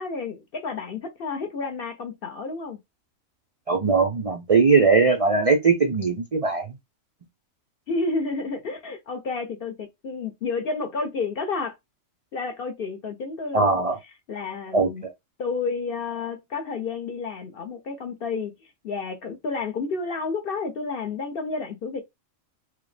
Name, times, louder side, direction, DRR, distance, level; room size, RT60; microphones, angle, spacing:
voice 1, 0.0-2.8 7.9-11.8 12.3-15.1 15.4-22.0, left 4 dB, 55° left, 0.7 m, -31 dB
voice 2, 3.7-6.7 13.5-14.0 14.7-15.1, right 4 dB, 65° right, 0.3 m, -20 dB
4.8 x 2.0 x 3.3 m
omnidirectional pair, 1.4 m